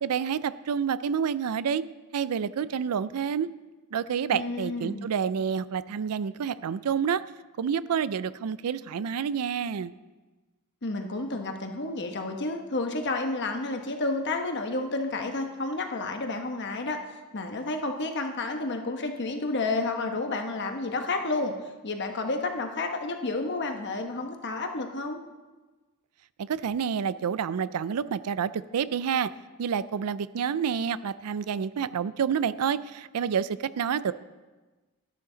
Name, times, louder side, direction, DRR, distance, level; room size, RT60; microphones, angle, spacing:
voice 1, 0.0-1.8 2.1-3.5 3.9-7.2 7.6-9.9 26.4-29.3 29.6-34.1, right 7 dB, 85° right, 16 dB, 0.4 m, -28 dB
voice 2, 4.3-5.0 10.8-17.0 17.3-21.5 21.8-25.2, left 3 dB, 50° left, 5 dB, 1.1 m, -30 dB
12.5 x 11.5 x 3.9 m, 1.2 s
head